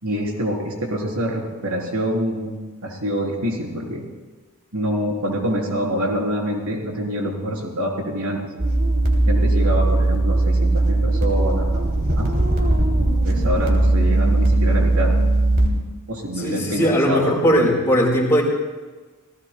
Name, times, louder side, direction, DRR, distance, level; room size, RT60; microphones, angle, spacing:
voice 1, 0.0-4.0 4.7-8.5 9.3-11.9 12.2-12.3 13.2-15.2 16.1-17.7, equal, 85° right, -1 dB, 4.1 m, -26 dB
sound 1, 8.6-15.7, right 2 dB, 45° right, 3.0 m, -18 dB
voice 2, 16.4-18.4, equal, 15° left, -4 dB, 4.7 m, -19 dB
29.5 x 18.0 x 2.3 m, 1.3 s
head